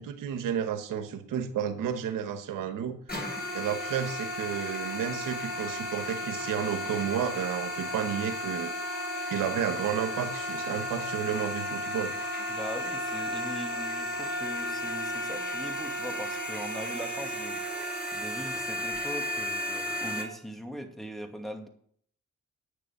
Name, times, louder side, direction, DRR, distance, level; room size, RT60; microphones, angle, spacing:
voice 1, 0.0-3.0 3.5-8.7 9.3-12.1, right 9 dB, 90° right, 1.2 m, -32 dB
sound 1, 3.1-20.2, left 1 dB, 30° left, 6.4 m, -34 dB
voice 2, 12.5-21.7, equal, ahead, 2.4 m, -40 dB
9.4 x 6.9 x 8.1 m
supercardioid pair, 55°, 32 cm